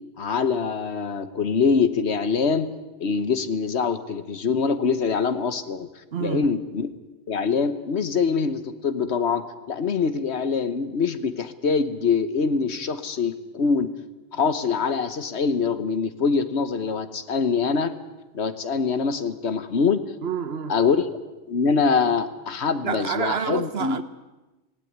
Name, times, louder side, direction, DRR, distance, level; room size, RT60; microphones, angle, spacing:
voice 1, 0.2-2.7 3.0-5.9 6.2-6.9 7.3-13.9 14.3-18.0 18.3-20.0 20.7-21.1 21.5-24.0, left 5 dB, 65° left, 1.4 m, -24 dB
voice 2, 6.1-6.5 20.2-20.8 22.8-24.0, right 6 dB, 60° right, 1.2 m, -28 dB
18.5 x 17.5 x 9.3 m
omnidirectional pair, 1.2 m